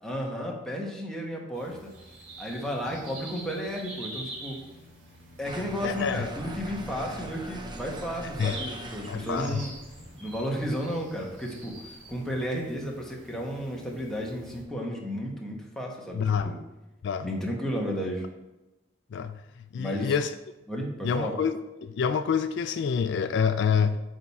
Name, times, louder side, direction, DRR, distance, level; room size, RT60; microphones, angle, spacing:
voice 1, 0.0-1.9 2.4-4.6 5.4-9.7 10.2-16.6 17.2-18.2 19.8-20.1 20.7-21.4, equal, 5° left, -2 dB, 1.1 m, -33 dB
sound 1, 1.5-14.6, right 1 dB, 85° right, 1.8 m, -46 dB
sound 2, 5.4-12.2, right 1 dB, 25° right, 0.7 m, -42 dB
voice 2, 5.8-6.3 8.4-8.6 9.1-9.6 16.1-16.6 17.0-17.3 19.1-19.4 19.7-20.3 21.0-24.0, left 6 dB, 65° left, 10 dB, 0.3 m, -27 dB
8.8 x 3.6 x 4.2 m, 1.0 s
head